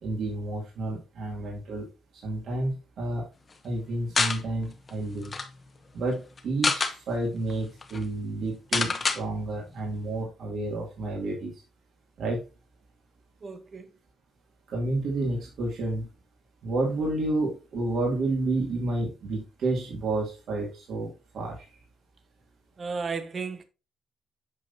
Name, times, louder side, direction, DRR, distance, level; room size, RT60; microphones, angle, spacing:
voice 1, 0.0-1.9 2.2-3.3 3.6-5.3 5.9-11.5 12.2-12.4 14.7-16.1 16.6-21.7, right 2 dB, 70° right, 2.5 m, -30 dB
sound 1, 4.2-4.4 4.9-5.0 5.2-5.5 6.4-7.0 7.5-7.6 7.8-8.0 8.7-9.2, left 4 dB, 35° left, 1.0 m, -26 dB
voice 2, 13.4-13.9 22.8-23.6, right 4 dB, 40° right, 1.1 m, -34 dB
8.0 x 5.4 x 2.7 m
cardioid pair, 90°, 0 cm